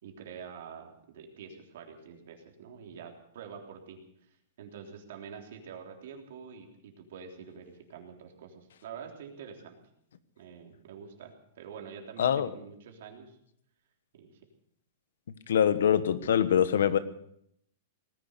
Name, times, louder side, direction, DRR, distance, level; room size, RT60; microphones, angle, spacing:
voice 1, 0.0-4.0 4.6-9.8 10.4-13.4 14.1-14.4, right 6 dB, 65° right, 2 dB, 3.5 m, -46 dB
voice 2, 12.2-12.5 15.5-17.0, left 9 dB, 85° left, 13 dB, 1.2 m, -24 dB
19.0 x 10.5 x 6.8 m, 0.71 s
supercardioid pair, 165°, 0 cm